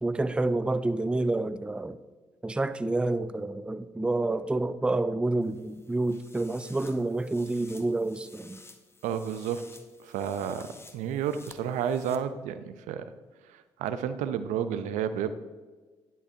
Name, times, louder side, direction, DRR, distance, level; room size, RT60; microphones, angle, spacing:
voice 1, 0.0-2.0 2.4-8.6, right 2 dB, 10° right, 0.4 m, -28 dB
sound 1, 5.4-12.2, left 3 dB, 20° left, 0.7 m, -53 dB
voice 2, 9.0-9.7 10.0-13.0 13.4-15.3, right 8 dB, 70° right, 0.4 m, -31 dB
10.5 x 5.4 x 2.6 m
hypercardioid pair, 45°, 13 cm